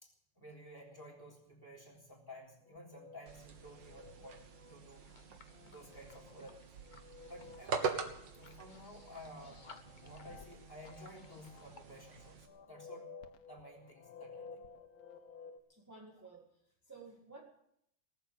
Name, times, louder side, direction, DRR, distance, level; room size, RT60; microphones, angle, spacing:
voice 1, 0.0-5.1 5.6-6.6 7.3-8.1 8.3-9.7 10.0-13.1 13.5-14.6, left 1 dB, 10° left, -3 dB, 3.6 m, -53 dB
sound 1, 2.6-15.6, left 5 dB, 85° left, 1.9 m, -56 dB
sound 2, 3.3-12.5, right 5 dB, 65° right, 2.0 m, -44 dB
sound 3, 5.0-11.8, left 4 dB, 35° left, 0.8 m, -61 dB
voice 2, 15.7-17.4, right 3 dB, 10° right, -2 dB, 2.0 m, -54 dB
18.5 x 8.0 x 8.5 m, 0.74 s
omnidirectional pair, 2.2 m